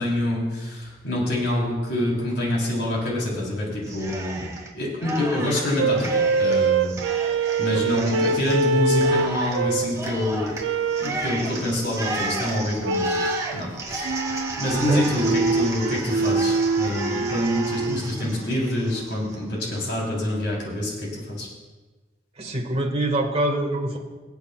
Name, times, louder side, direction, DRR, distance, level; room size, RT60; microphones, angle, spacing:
voice 1, 0.0-4.5 4.7-6.9 7.6-10.5 11.0-13.1 13.5-14.1 14.6-21.5, left 1 dB, 65° left, -3 dB, 3.4 m, -26 dB
Cheering, 3.8-4.7 5.0-19.4, right 2 dB, 15° right, 1.5 m, -33 dB
sound 1, 5.8-10.0 10.6-11.2 12.8-13.5 14.0-18.0, right 3 dB, 80° right, 0.4 m, -24 dB
voice 2, 7.7-8.1 14.9-15.3 18.2-18.4 22.4-24.0, right 1 dB, 35° right, 1 dB, 1.6 m, -26 dB
24.5 x 8.2 x 2.3 m, 1.3 s
head